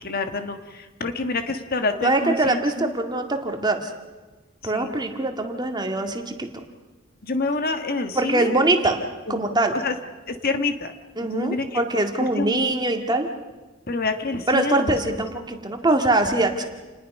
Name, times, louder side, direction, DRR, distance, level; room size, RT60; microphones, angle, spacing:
voice 1, 0.0-2.9 4.7-4.9 7.2-8.5 9.3-9.5 9.7-9.9 10.3-10.9 11.2-11.8 12.4-12.6 13.9-14.9, left 3 dB, 50° left, 7 dB, 1.4 m, -27 dB
voice 2, 2.0-3.9 4.6-6.7 8.1-9.0 9.3-9.9 11.2-13.3 14.5-16.6, right 2 dB, 20° right, 4 dB, 2.0 m, -23 dB
29.0 x 20.0 x 5.4 m, 1.2 s
head